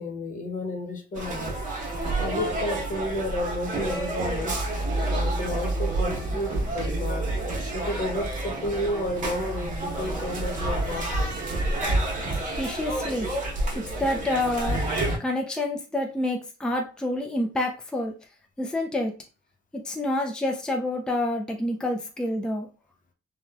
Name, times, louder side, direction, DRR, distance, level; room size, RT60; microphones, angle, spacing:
voice 1, 0.0-1.5 2.2-4.6 5.1-7.2 7.7-11.4, left 1 dB, 40° left, 4 dB, 0.7 m, -32 dB
sound 1, 1.2-15.2, right 2 dB, 40° right, 1.0 m, -29 dB
voice 2, 12.5-13.3 13.7-14.9 15.2-18.1 18.6-19.1 19.7-22.7, left 1 dB, 5° left, 1 dB, 0.4 m, -28 dB
3.0 x 2.3 x 2.3 m, 0.35 s
cardioid pair, 90°, 20 cm